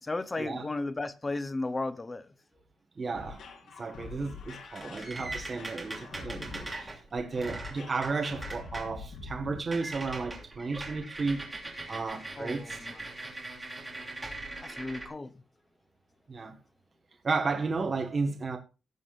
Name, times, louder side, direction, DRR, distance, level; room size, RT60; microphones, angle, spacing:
voice 1, 0.0-2.3 4.8-5.0 12.4-13.0 14.6-15.3, left 2 dB, 20° left, 0.8 m, -35 dB
voice 2, 3.0-3.4 3.8-11.5 11.9-12.8 16.3-16.6 17.2-18.6, right 4 dB, 30° right, 1.5 m, -33 dB
sound 1, 3.1-9.6, left 4 dB, 75° left, 2.6 m, -45 dB
sound 2, 4.4-8.9 9.2-9.4 9.7-15.1, right 2 dB, 10° right, 2.8 m, -41 dB
17.5 x 7.3 x 2.5 m
wide cardioid pair, 150°, 0 cm